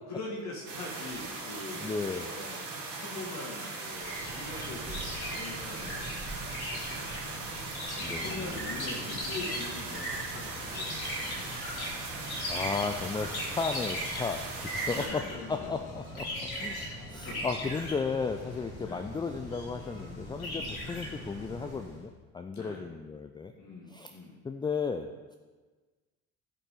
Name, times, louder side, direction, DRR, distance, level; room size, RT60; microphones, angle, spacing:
voice 1, 0.1-1.9 2.2-2.7 3.0-7.4 7.9-11.5 14.9-15.8 16.3-17.4 18.8-19.1 20.4-20.8 22.5-22.9 23.5-24.4, left 2 dB, 40° left, -2 dB, 2.1 m, -43 dB
sound 1, 0.7-15.1, right 3 dB, 80° right, 2.3 m, -39 dB
voice 2, 1.8-2.2 8.0-8.6 12.5-15.2 15.5-16.3 16.6-23.5 23.9-24.2 24.4-25.4, left 5 dB, 10° left, 5 dB, 0.4 m, -34 dB
sound 2, 4.0-22.0, equal, 75° left, 2.1 m, -39 dB
15.5 x 5.4 x 3.8 m, 1.3 s
figure-of-eight pair, 60°, 43 cm